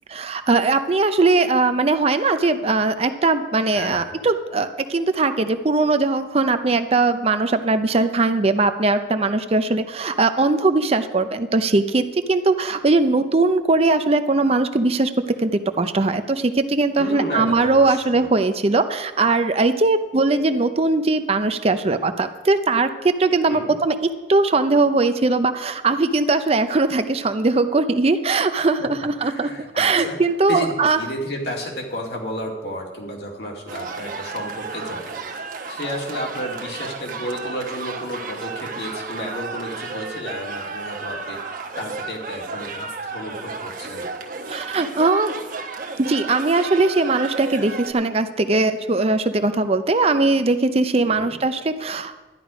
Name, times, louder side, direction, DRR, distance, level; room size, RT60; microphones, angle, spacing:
voice 1, 0.1-15.1 15.4-15.5 15.8-24.0 24.3-29.5 29.8-31.0 44.5-45.3 46.1-52.1, right 3 dB, 35° right, 9 dB, 0.6 m, -20 dB
voice 2, 3.7-4.2 17.0-18.3 23.5-23.7 28.5-28.9 29.2-30.2 30.5-35.3 35.7-41.4 41.8-44.1 51.1-51.3, equal, 65° left, 0 dB, 2.3 m, -32 dB
sound 1, 33.7-47.9, right 4 dB, 50° right, 1.1 m, -33 dB
12.0 x 10.5 x 5.0 m, 1.2 s
head